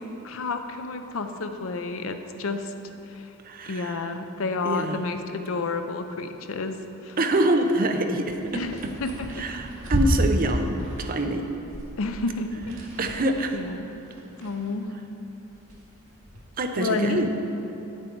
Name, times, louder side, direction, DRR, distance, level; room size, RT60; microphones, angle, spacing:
voice 1, 0.2-2.7 3.0-3.3 3.7-6.7 7.0-7.2 8.5-9.5 12.0-12.5 13.5-13.9 14.4-14.9 16.8-17.2, left 3 dB, 70° left, 7 dB, 0.6 m, -30 dB
voice 2, 3.4-4.1 4.6-5.0 7.2-8.9 9.3-11.5 13.0-13.6 16.6-17.3, right 1 dB, 40° right, 5 dB, 0.6 m, -26 dB
sound 1, 8.2-15.1 15.4-16.4, equal, 85° right, 2.1 m, -31 dB
9.8 x 7.5 x 4.6 m, 3.0 s
head